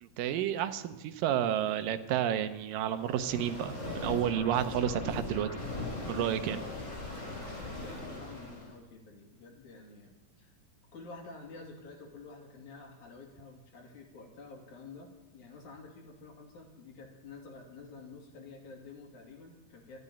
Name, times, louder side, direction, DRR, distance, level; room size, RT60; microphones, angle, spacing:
voice 1, 0.0-3.7 4.0-5.5 6.1-6.6, right 10 dB, 80° right, 10 dB, 2.5 m, -30 dB
sound 1, 3.0-8.7, left 2 dB, 20° left, 4.8 m, -39 dB
voice 2, 6.0-6.5 7.0-10.6 10.9-20.0, left 3 dB, 60° left, 0 dB, 3.8 m, -50 dB
13.5 x 10.0 x 9.9 m, 1.1 s
omnidirectional pair, 4.0 m